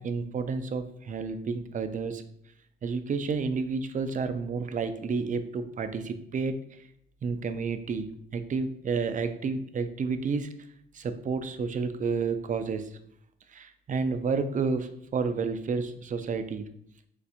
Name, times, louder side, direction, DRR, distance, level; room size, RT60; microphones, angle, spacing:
voice 1, 0.0-2.2 2.8-6.8 7.2-10.5 10.9-12.9 13.5-16.7, right 5 dB, 40° right, 9 dB, 0.5 m, -30 dB
6.3 x 2.5 x 2.8 m, 0.69 s
cardioid pair, 90°, 20 cm